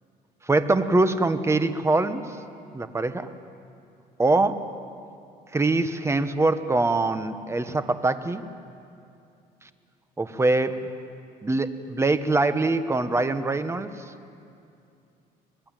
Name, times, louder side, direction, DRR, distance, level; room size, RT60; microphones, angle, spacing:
voice 1, 0.5-2.2 2.7-3.3 4.2-4.7 5.5-8.4 10.2-10.9 11.4-13.9, right 2 dB, 15° right, 10 dB, 1.3 m, -23 dB
25.0 x 20.5 x 9.1 m, 2.6 s
cardioid pair, 110°, 17 cm